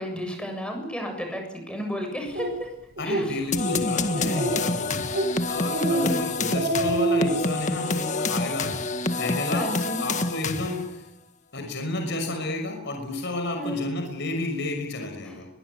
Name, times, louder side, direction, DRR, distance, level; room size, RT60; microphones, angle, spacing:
voice 1, 0.0-2.7 3.0-3.4 5.7-6.2 9.5-10.0 13.5-13.9 15.2-15.4, equal, 5° left, 4 dB, 7.6 m, -32 dB
Speech, 2.4-2.5 3.0-3.3 3.6-3.7 4.1-4.7 5.1-5.3 5.7-6.1 6.4-7.4, right 2 dB, 45° right, 6.4 m, -26 dB
voice 2, 3.0-5.1 5.5-8.8 9.2-11.0 11.5-15.5, left 2 dB, 55° left, 4 dB, 6.1 m, -31 dB
sound 1, 3.5-10.9, left 3 dB, 35° left, 1.7 m, -27 dB
23.0 x 23.0 x 8.6 m, 0.83 s
head